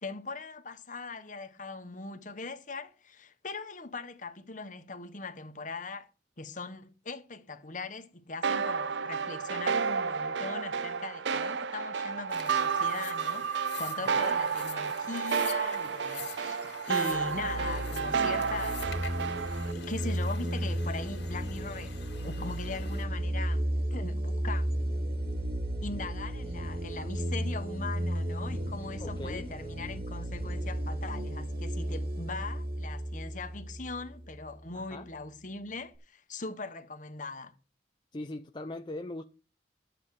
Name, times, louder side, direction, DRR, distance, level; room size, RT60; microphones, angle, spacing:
voice 1, 0.0-6.1 6.4-19.1 19.6-22.0 22.2-24.7 25.8-37.5, left 3 dB, 45° left, 1.3 m, -40 dB
sound 1, 8.4-19.7, right 6 dB, 85° right, 0.5 m, -31 dB
sound 2, 12.3-23.0, left 7 dB, 85° left, 2.3 m, -47 dB
voice 2, 14.0-14.4 29.0-29.5 34.7-35.1 38.1-39.2, left 2 dB, 25° left, 0.6 m, -40 dB
sound 3, 17.1-34.5, right 1 dB, 60° right, 2.5 m, -34 dB
12.0 x 7.4 x 4.9 m
head